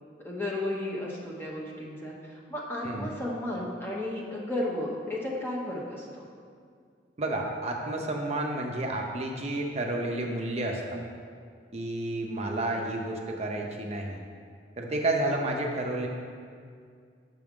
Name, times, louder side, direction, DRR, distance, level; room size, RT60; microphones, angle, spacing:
voice 1, 0.2-6.3, left 1 dB, 10° left, -4 dB, 0.8 m, -34 dB
voice 2, 2.8-3.2 7.2-11.0 11.7-14.2 14.8-16.1, right 2 dB, 35° right, 1 dB, 0.6 m, -31 dB
6.0 x 5.9 x 3.6 m, 2.2 s
head